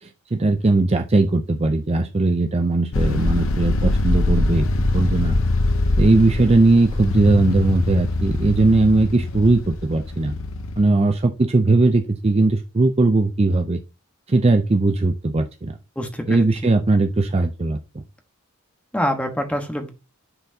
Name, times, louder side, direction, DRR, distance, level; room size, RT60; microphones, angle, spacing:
voice 1, 0.0-4.7 4.9-5.4 6.0-10.3 10.8-13.8 14.3-15.8 16.3-17.8, right 2 dB, 30° right, 5 dB, 0.5 m, -19 dB
sound 1, 2.9-10.8, left 2 dB, 70° left, 0.7 m, -23 dB
voice 2, 16.0-16.4 18.9-19.9, equal, 5° left, 4 dB, 1.2 m, -25 dB
9.9 x 4.4 x 2.7 m, 0.28 s
head